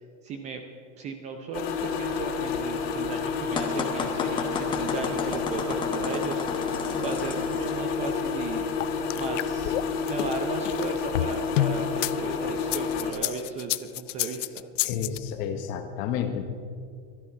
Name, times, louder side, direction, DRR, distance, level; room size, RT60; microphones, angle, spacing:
voice 1, 0.2-0.6 1.0-6.4 6.9-9.8 10.1-14.7, right 5 dB, 20° right, 5 dB, 0.6 m, -36 dB
sound 1, 1.5-13.1, left 5 dB, 55° left, 2.5 m, -30 dB
sound 2, 3.6-7.8, left 5 dB, 15° left, 1.0 m, -32 dB
sound 3, 8.8-12.1 12.6-15.2, left 14 dB, 85° left, 0.6 m, -29 dB
voice 2, 14.8-16.4, left 8 dB, 35° left, 6 dB, 1.3 m, -30 dB
18.0 x 13.0 x 4.7 m, 2.2 s
supercardioid pair, 165°, 36 cm